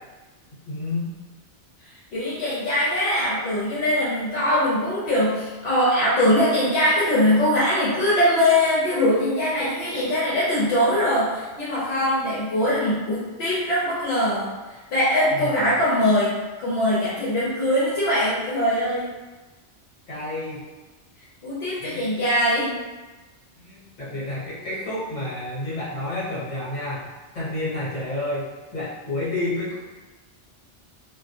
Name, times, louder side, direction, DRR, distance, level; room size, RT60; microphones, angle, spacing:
voice 1, 0.7-1.1 15.3-15.5 20.1-20.6 21.8-22.1 23.6-27.1 27.3-28.5 28.7-29.7, left 2 dB, 45° left, -9 dB, 1.0 m, -30 dB
voice 2, 2.1-14.5 14.9-16.3 16.6-19.1 21.4-22.8, left 1 dB, 70° left, -9 dB, 0.8 m, -22 dB
2.3 x 2.0 x 2.8 m, 1.2 s
omnidirectional pair, 1.2 m